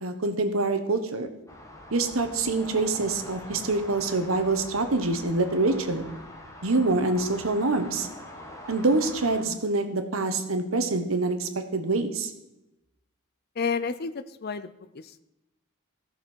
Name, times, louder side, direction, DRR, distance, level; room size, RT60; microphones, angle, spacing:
voice 1, 0.0-1.3 1.9-6.1 6.6-8.1 8.7-12.3, right 3 dB, 75° right, 8 dB, 1.2 m, -25 dB
sound 1, 1.5-9.4, left 1 dB, 15° left, 1.3 m, -43 dB
voice 2, 13.6-15.2, left 5 dB, 45° left, 12 dB, 0.5 m, -31 dB
15.5 x 6.8 x 4.5 m, 0.93 s
head